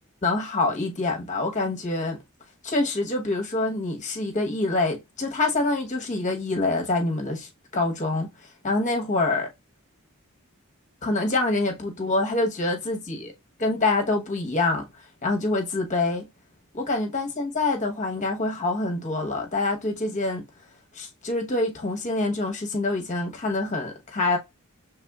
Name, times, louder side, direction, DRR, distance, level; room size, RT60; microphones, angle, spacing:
voice 1, 0.2-2.2 2.6-8.3 8.6-9.5 11.0-13.3 13.6-14.9 15.2-16.3 16.9-20.4 20.9-24.4, left 2 dB, 35° left, 1.0 m, -26 dB
5.9 x 3.3 x 2.3 m
head